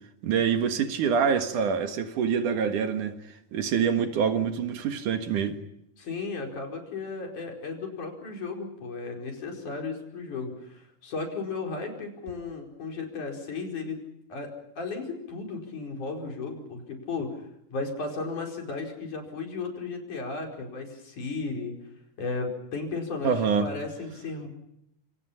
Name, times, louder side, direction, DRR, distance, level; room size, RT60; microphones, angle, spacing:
voice 1, 0.2-3.2 3.5-5.6 23.2-23.7, right 7 dB, 70° right, 7 dB, 3.1 m, -25 dB
voice 2, 6.0-14.0 14.3-17.4 17.7-21.7 22.2-24.5, left 4 dB, 65° left, 2 dB, 6.3 m, -35 dB
27.5 x 27.0 x 5.8 m, 0.77 s
omnidirectional pair, 3.8 m